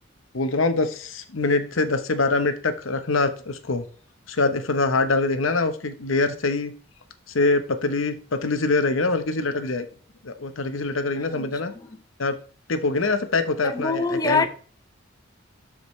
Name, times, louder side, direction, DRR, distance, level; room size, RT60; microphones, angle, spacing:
voice 1, 0.3-3.8 4.3-6.7 7.3-9.9 10.2-11.7 12.2-12.3 12.7-14.5, left 3 dB, 90° left, 0.9 m, -24 dB
voice 2, 13.6-14.5, left 4 dB, 20° left, 0.4 m, -24 dB
12.5 x 4.9 x 3.2 m
head